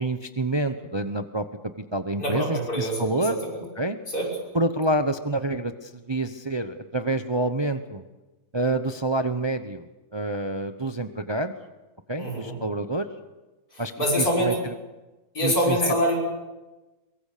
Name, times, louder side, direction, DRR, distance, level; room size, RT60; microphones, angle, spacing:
voice 1, 0.0-1.5 1.9-3.4 3.8-4.0 4.5-8.0 8.5-9.8 10.1-11.5 12.1-13.1 13.8-13.9 14.2-14.7 15.4-16.2, right 2 dB, 25° right, 9 dB, 0.7 m, -27 dB
voice 2, 2.2-3.6 4.1-4.3 12.2-12.6 13.7-14.6 15.3-16.2, equal, 75° left, -2 dB, 6.6 m, -25 dB
23.0 x 22.5 x 6.7 m, 1.1 s
omnidirectional pair, 1.6 m